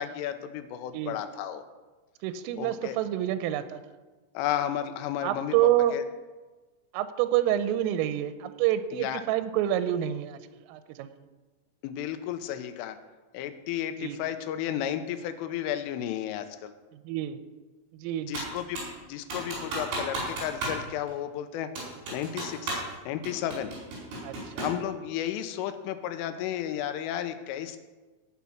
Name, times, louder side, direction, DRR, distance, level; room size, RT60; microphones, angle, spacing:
voice 1, 0.0-1.7 2.6-3.0 4.3-5.5 5.9-6.0 8.9-9.2 11.8-13.0 13.3-16.7 18.3-21.7 22.1-23.7 24.6-27.8, left 11 dB, 85° left, 9 dB, 3.3 m, -33 dB
voice 2, 2.2-3.8 5.2-6.0 6.9-11.1 14.0-14.2 17.0-17.4 18.0-18.5 24.2-24.6, right 12 dB, 90° right, 11 dB, 3.3 m, -28 dB
Computer keyboard, 18.3-19.0 19.3-20.8 21.1-21.2 21.8-22.9 23.2-24.8, right 2 dB, 55° right, 6.6 m, -34 dB
18.0 x 6.0 x 5.8 m, 1.3 s
omnidirectional pair, 5.8 m